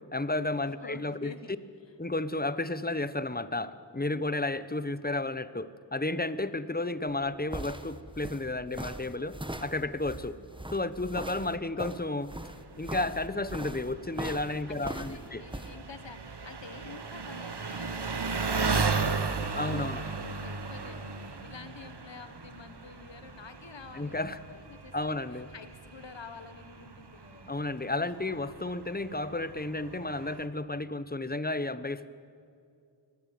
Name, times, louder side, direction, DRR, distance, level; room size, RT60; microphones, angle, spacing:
voice 1, 0.1-1.3 2.0-9.4 9.6-10.3 10.7-12.3 12.8-15.4 19.6-20.0 23.9-24.4 24.9-25.5 27.5-32.1, left 2 dB, 20° left, 14 dB, 0.9 m, -32 dB
voice 2, 0.7-1.6 10.2-10.4 14.7-28.1, left 5 dB, 90° left, 11 dB, 1.3 m, -49 dB
sound 1, 7.1-15.7, right 1 dB, 10° right, 1.2 m, -40 dB
Engine, 12.3-30.5, right 4 dB, 70° right, 1.4 m, -36 dB
20.0 x 16.0 x 9.4 m, 2.4 s
wide cardioid pair, 40°, 42 cm